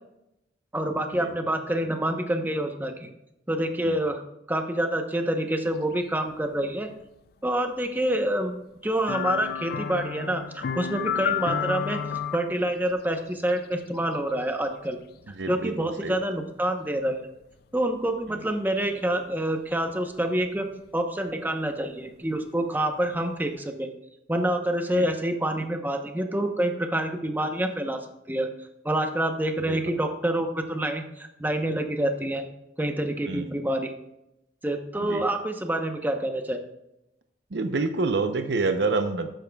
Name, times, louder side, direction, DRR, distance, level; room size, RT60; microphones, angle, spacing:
voice 1, 0.7-3.1 3.5-4.2 4.5-6.9 7.4-8.6 8.8-12.0 12.3-15.0 15.3-17.3 17.7-20.7 20.9-23.9 24.3-28.0 28.3-28.5 28.8-32.4 32.8-33.9 34.6-36.6, right 1 dB, 10° right, 5 dB, 0.9 m, -27 dB
sound 1, 9.1-12.4 15.2-15.3, left 7 dB, 60° left, 0.4 m, -29 dB
voice 2, 15.3-16.2 18.3-18.4 24.9-25.1 29.6-29.9 33.3-33.6 35.0-35.2 37.5-39.3, right 3 dB, 75° right, 7 dB, 0.7 m, -28 dB
13.0 x 9.2 x 2.3 m, 0.86 s
head